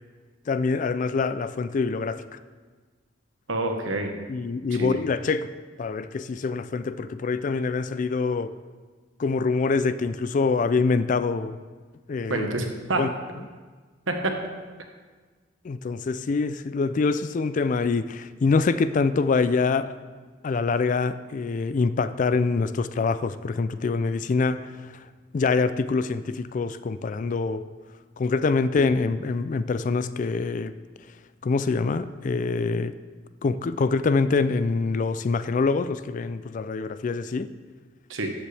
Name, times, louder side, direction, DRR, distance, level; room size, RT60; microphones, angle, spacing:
voice 1, 0.5-2.2 4.3-5.5 5.8-8.5 9.2-11.6 12.1-12.5 13.0-13.1 15.6-19.9 20.4-24.7 25.3-27.6 28.2-30.7 31.4-32.9 33.4-37.5, left 4 dB, 40° left, 13 dB, 0.3 m, -25 dB
voice 2, 3.5-4.1 4.7-5.0 12.3-13.0 14.1-14.3 38.1-38.3, right 2 dB, 85° right, 4 dB, 1.2 m, -27 dB
13.0 x 7.4 x 3.4 m, 1.4 s
head